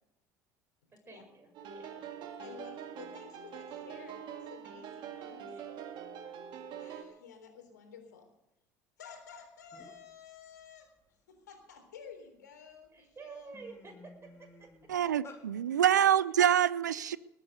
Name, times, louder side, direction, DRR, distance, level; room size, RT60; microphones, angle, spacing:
voice 1, 0.9-2.7 3.9-4.3 5.5-5.7 12.9-14.9, right 4 dB, 25° right, 2 dB, 7.2 m, -52 dB
sound 1, 1.5-7.0, right 8 dB, 55° right, 2.0 m, -44 dB
voice 2, 2.4-5.5 6.8-8.3 9.0-10.9 11.3-13.5 14.9-15.1 15.9-16.2, left 6 dB, 85° left, 4 dB, 3.6 m, -52 dB
sound 2, 9.4-9.5 9.7-10.1 10.6-12.1 12.7-12.9 13.2-15.4, left 3 dB, 30° left, 3.5 m, -54 dB
voice 3, 14.9-17.2, right 10 dB, 85° right, 20 dB, 0.5 m, -26 dB
20.0 x 9.0 x 6.6 m, 0.88 s
hypercardioid pair, 65°, 9 cm